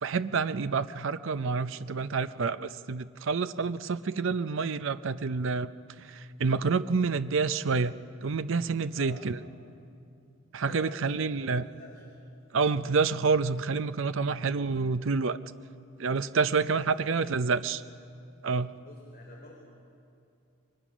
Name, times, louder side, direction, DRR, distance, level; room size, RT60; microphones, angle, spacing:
voice 1, 0.0-5.7 6.0-7.9 8.2-9.4 10.5-11.6 12.5-15.4 16.0-17.8 18.4-18.7, right 4 dB, 65° right, 13 dB, 0.6 m, -28 dB
voice 2, 10.6-12.1 14.3-14.5 16.4-17.3 18.7-19.6, left 1 dB, 45° left, -2 dB, 3.6 m, -49 dB
29.0 x 23.5 x 6.2 m, 2.5 s
head